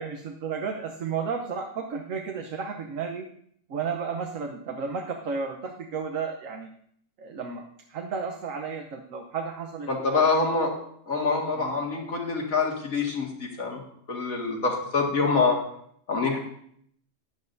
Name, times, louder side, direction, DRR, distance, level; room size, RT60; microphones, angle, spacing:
voice 1, 0.0-3.3 3.7-6.7 7.2-7.6 7.9-10.3 11.5-11.8, right 5 dB, 75° right, 3 dB, 1.3 m, -33 dB
voice 2, 9.9-10.7 11.1-13.8 14.1-15.6 16.1-16.4, left 4 dB, 90° left, -1 dB, 2.5 m, -25 dB
14.5 x 10.5 x 2.7 m, 0.66 s
omnidirectional pair, 1.4 m